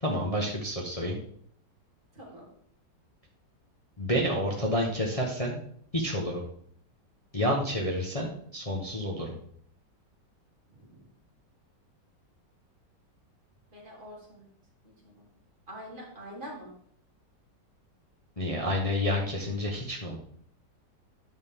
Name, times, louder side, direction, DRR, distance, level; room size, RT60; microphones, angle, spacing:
voice 1, 0.0-1.2 4.0-5.6 5.9-6.4 7.3-9.4 18.4-20.2, equal, 25° left, -2 dB, 1.0 m, -29 dB
voice 2, 2.1-2.5 10.7-11.1 13.7-14.5 14.8-15.3 15.7-16.7, equal, 25° right, -4 dB, 2.9 m, -45 dB
9.4 x 6.5 x 3.6 m, 0.64 s
omnidirectional pair, 1.9 m